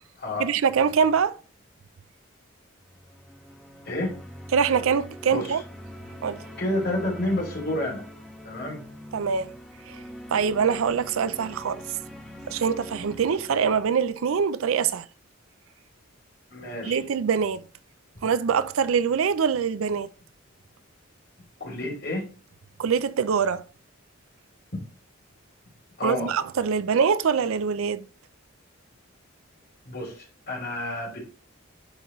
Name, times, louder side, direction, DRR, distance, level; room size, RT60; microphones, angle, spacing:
voice 1, 0.4-1.4 4.5-5.6 6.2-6.4 9.1-9.5 9.9-10.0 10.3-11.8 12.5-15.1 16.8-17.6 18.2-20.1 22.8-23.6 26.0-28.1, right 6 dB, 80° right, 0.4 m, -24 dB
sound 1, 2.8-13.8, equal, ahead, 1.4 m, -43 dB
voice 2, 3.8-4.2 5.3-5.6 6.6-8.0 8.4-8.8 16.5-17.0 21.6-22.3 26.0-26.3 29.8-31.2, left 1 dB, 50° left, 2.8 m, -30 dB
10.5 x 3.9 x 3.0 m
head